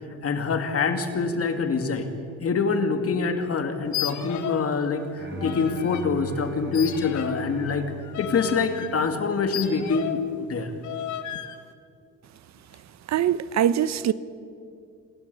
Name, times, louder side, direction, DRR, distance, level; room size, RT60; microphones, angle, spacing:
voice 1, 0.2-2.1 2.4-7.9 8.2-10.7, left 5 dB, 50° left, 2.4 m, -25 dB
sound 1, 3.8-4.7 5.0-6.1 6.7-10.3 10.8-11.6, left 10 dB, 70° left, 1.4 m, -34 dB
Bowed string instrument, 5.2-9.3, right 1 dB, 35° right, 5.8 m, -40 dB
voice 2, 13.1-14.1, right 10 dB, 65° right, 0.8 m, -22 dB
26.0 x 13.5 x 8.5 m
cardioid pair, 90°, 30 cm